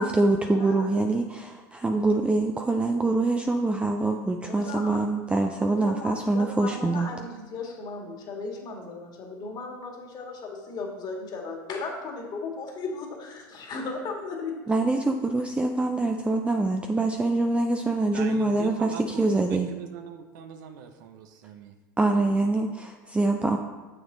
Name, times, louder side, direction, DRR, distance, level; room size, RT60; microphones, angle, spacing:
voice 1, 0.0-7.1 14.7-19.7 22.0-23.6, right 2 dB, 10° right, 4 dB, 0.5 m, -24 dB
voice 2, 0.5-0.9 4.4-5.0 5.7-14.5, left 3 dB, 40° left, 0 dB, 2.0 m, -36 dB
voice 3, 18.1-21.7, right 7 dB, 70° right, 7 dB, 0.8 m, -41 dB
7.2 x 6.1 x 3.9 m, 1.2 s
hypercardioid pair, 90°, 11 cm